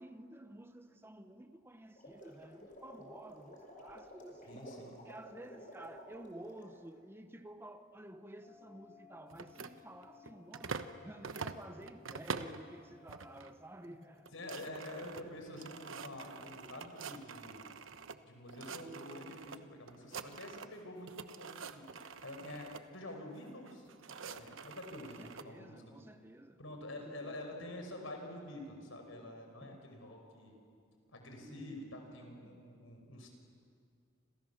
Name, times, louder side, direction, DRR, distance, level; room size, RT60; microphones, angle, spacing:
voice 1, 0.0-4.7 5.0-14.3 24.9-26.6 27.0-27.4 29.6-29.9 31.4-32.6, right 1 dB, 10° right, 0.9 m, -52 dB
sound 1, 1.8-6.8, equal, 40° left, 5.0 m, -53 dB
voice 2, 4.5-4.9 14.3-17.6 18.2-23.9 24.2-26.0 26.6-30.5 31.1-33.3, left 1 dB, 75° left, 5.4 m, -47 dB
sound 2, 8.4-16.5, left 6 dB, 25° left, 7.2 m, -63 dB
sound 3, 9.3-11.0 11.2-12.6 13.1-13.5 13.8-13.9 14.2-18.2 18.5-19.6 19.9-20.8 21.1-22.8 23.6-25.5, right 5 dB, 70° right, 1.1 m, -46 dB
29.5 x 27.5 x 7.2 m
head